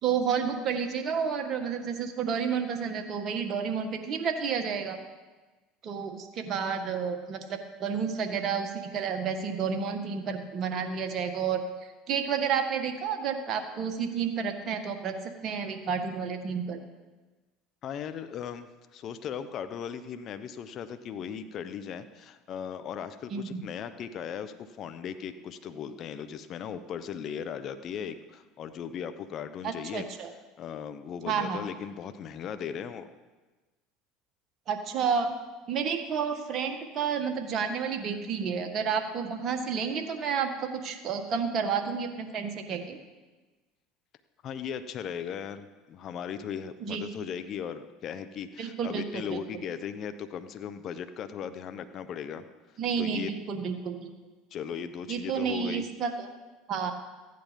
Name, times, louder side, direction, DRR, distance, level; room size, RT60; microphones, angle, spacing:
voice 1, 0.0-5.0 5.8-11.6 12.1-15.1 15.4-16.8 23.3-23.6 29.6-30.3 31.2-31.6 34.7-35.3 35.7-43.0 46.8-47.0 48.6-49.0 49.3-49.4 52.8-54.1 55.1-56.3 56.7-56.9, right 6 dB, 50° right, 5 dB, 1.7 m, -30 dB
voice 2, 17.8-30.1 30.6-33.1 44.4-52.4 53.0-53.3 54.5-55.8, left 8 dB, 50° left, 10 dB, 0.8 m, -37 dB
14.5 x 9.6 x 5.3 m, 1.2 s
hypercardioid pair, 85°, 0 cm